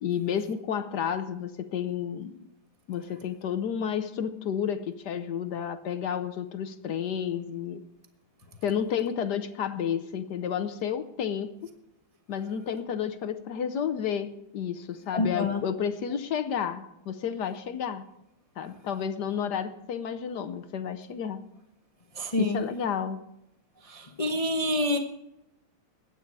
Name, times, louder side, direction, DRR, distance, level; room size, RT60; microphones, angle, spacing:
voice 1, 0.0-2.5 2.9-7.8 8.6-11.7 12.3-18.0 18.6-21.4 22.4-23.2, left 8 dB, 65° left, 10 dB, 1.2 m, -31 dB
voice 2, 15.1-15.6 22.2-22.6 24.2-25.0, left 1 dB, 30° left, 4 dB, 0.6 m, -26 dB
22.5 x 9.9 x 4.7 m, 0.87 s
omnidirectional pair, 2.4 m